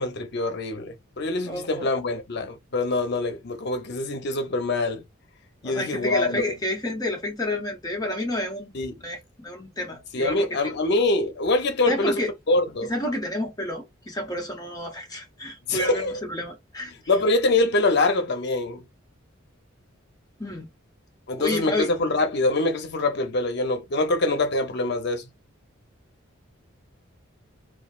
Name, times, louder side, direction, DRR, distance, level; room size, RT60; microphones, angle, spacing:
voice 1, 0.0-5.0 5.6-6.4 8.7-8.9 10.1-12.2 12.5-12.9 15.7-16.2 17.1-18.8 21.3-25.2, left 2 dB, 55° left, 0.6 m, -24 dB
voice 2, 1.4-1.9 5.6-8.7 9.0-10.5 11.9-12.3 12.9-16.9 20.4-20.7 21.4-21.9, left 1 dB, 20° left, 0.6 m, -30 dB
3.0 x 2.3 x 2.3 m
head